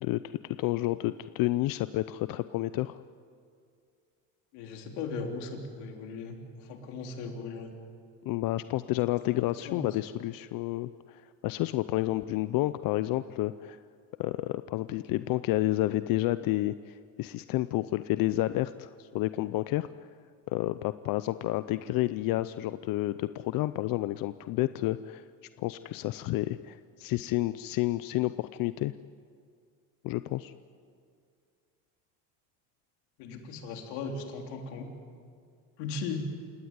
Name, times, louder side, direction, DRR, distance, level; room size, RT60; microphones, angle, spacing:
voice 1, 0.0-3.0 8.2-13.8 14.2-19.9 20.5-25.2 25.6-28.9 30.0-30.5, left 17 dB, 60° left, 13 dB, 0.7 m, -30 dB
voice 2, 4.5-7.7 9.3-9.8 33.2-34.9 35.8-36.2, left 4 dB, 85° left, 3 dB, 3.6 m, -38 dB
28.5 x 17.5 x 9.7 m, 2.3 s
cardioid pair, 125°, 38 cm